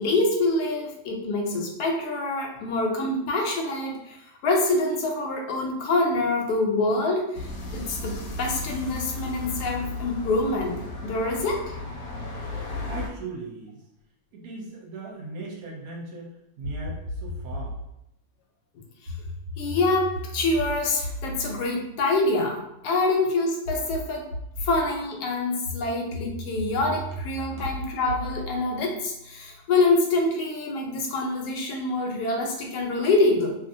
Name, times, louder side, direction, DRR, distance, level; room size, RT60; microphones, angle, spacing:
voice 1, 0.0-4.2 4.4-10.7 11.0-11.7 19.6-24.3 24.6-33.5, left 2 dB, 90° left, 1 dB, 1.2 m, -25 dB
sound 1, 7.3-13.1, left 2 dB, 70° left, 1.0 m, -34 dB
voice 2, 12.9-13.8 14.3-17.8 27.6-27.7, right 3 dB, 70° right, -2 dB, 1.2 m, -39 dB
sound 2, 16.6-17.9 19.1-22.8 23.6-24.9 25.6-29.6, equal, 45° right, 1.4 m, -36 dB
2.8 x 2.7 x 2.6 m, 0.82 s
omnidirectional pair, 1.6 m